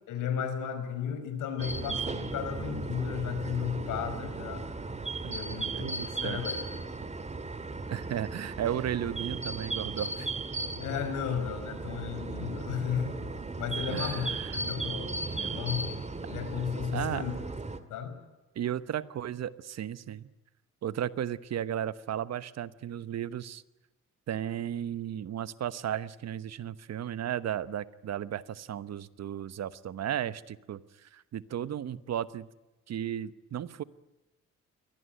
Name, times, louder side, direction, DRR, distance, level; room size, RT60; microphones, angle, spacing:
voice 1, 0.1-4.6 5.3-6.5 10.8-13.3 13.6-16.0 16.3-17.3 17.9-18.2, left 8 dB, 85° left, 9 dB, 5.1 m, -34 dB
sound 1, 1.6-17.8, right 3 dB, 20° right, 2.0 m, -36 dB
voice 2, 5.7-6.4 7.9-10.3 13.9-14.7 16.9-17.2 18.5-20.3 20.8-23.6 24.3-32.5 32.9-33.8, right 10 dB, 60° right, 16 dB, 1.1 m, -35 dB
23.0 x 18.5 x 9.3 m, 1.1 s
cardioid pair, 90°, 30 cm